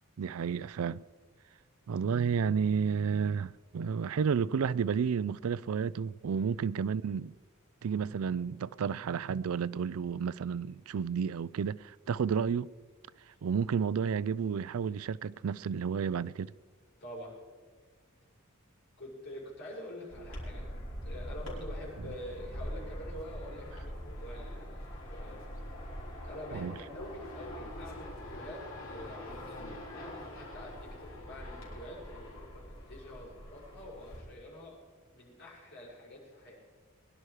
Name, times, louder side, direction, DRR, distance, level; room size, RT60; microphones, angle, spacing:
voice 1, 0.2-1.0 1.9-7.3 7.8-12.7 13.4-16.5 26.5-26.7, right 6 dB, 85° right, 0.4 m, -31 dB
voice 2, 17.0-17.4 19.0-20.7 21.0-25.4 26.2-34.8 35.1-36.5, left 1 dB, 55° left, 6.3 m, -46 dB
sound 1, 20.1-34.2, equal, 70° left, 4.9 m, -43 dB
21.5 x 11.5 x 4.9 m
head